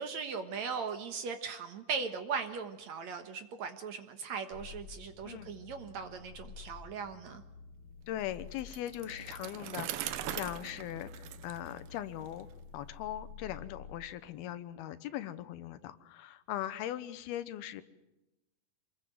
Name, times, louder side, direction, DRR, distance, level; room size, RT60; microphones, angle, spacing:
voice 1, 0.0-7.4, right 5 dB, 60° right, 7 dB, 2.3 m, -38 dB
sound 1, 4.5-14.0, left 5 dB, 65° left, 1.4 m, -51 dB
voice 2, 8.1-12.5 12.7-17.8, left 12 dB, 85° left, 13 dB, 3.0 m, -40 dB
Bicycle, 8.6-12.4, right 13 dB, 85° right, 2.8 m, -41 dB
27.0 x 20.5 x 7.8 m, 0.98 s
omnidirectional pair, 4.3 m